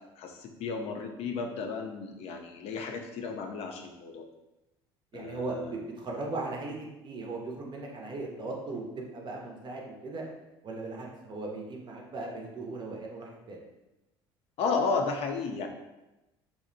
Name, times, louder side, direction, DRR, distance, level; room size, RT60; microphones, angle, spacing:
voice 1, 0.2-4.2 5.1-5.7 14.6-15.7, left 4 dB, 50° left, 3 dB, 0.4 m, -33 dB
voice 2, 5.1-10.2 10.6-13.6, right 3 dB, 35° right, 0 dB, 0.6 m, -38 dB
2.7 x 2.0 x 2.5 m, 0.99 s
hypercardioid pair, 60°, 13 cm